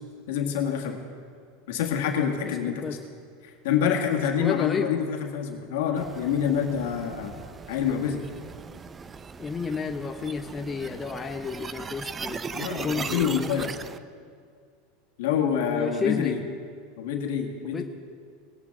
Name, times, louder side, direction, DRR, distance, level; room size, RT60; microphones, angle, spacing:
voice 1, 0.3-1.0 1.7-3.0 3.4-7.4 7.7-8.2 12.3-13.7 15.2-16.4 17.0-17.8, left 8 dB, 75° left, 3 dB, 1.7 m, -27 dB
voice 2, 2.4-3.0 4.4-4.9 9.4-12.5 12.8-13.3 15.6-16.4 17.6-17.8, left 5 dB, 20° left, 5 dB, 0.8 m, -31 dB
sound 1, 6.0-14.0, right 5 dB, 25° right, 0.5 m, -39 dB
19.5 x 9.1 x 3.7 m, 2.2 s
supercardioid pair, 110°, 0 cm